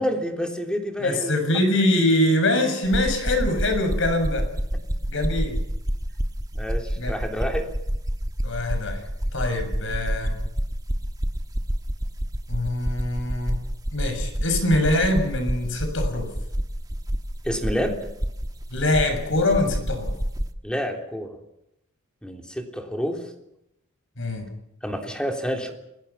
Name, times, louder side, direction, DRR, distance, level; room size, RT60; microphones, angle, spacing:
voice 1, 0.0-1.4 6.5-7.7 17.4-18.0 20.6-21.4 22.2-23.2 24.8-25.7, equal, 5° left, 3 dB, 3.5 m, -28 dB
voice 2, 1.0-4.5 5.1-5.6 7.0-7.1 8.4-9.0 9.3-10.3 12.5-13.6 13.9-16.3 18.7-20.1 24.2-24.5, left 1 dB, 60° left, 6 dB, 7.0 m, -23 dB
sound 1, 2.8-20.5, equal, 15° right, 1.4 m, -28 dB
29.0 x 22.5 x 5.8 m, 0.81 s
head